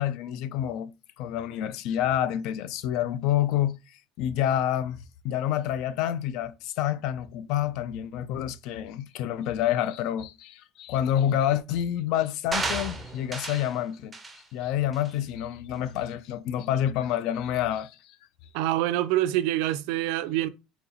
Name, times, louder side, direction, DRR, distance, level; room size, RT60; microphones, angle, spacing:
voice 1, 0.0-14.1 14.5-18.2 20.4-20.5, left 11 dB, 55° left, 0.4 m, -28 dB
sound 1, 12.5-13.7 14.1-14.4 14.9-15.1, right 3 dB, 10° right, 0.5 m, -32 dB
voice 2, 18.5-20.5, right 14 dB, 70° right, 0.4 m, -26 dB
4.1 x 2.7 x 4.0 m
cardioid pair, 170°, 0 cm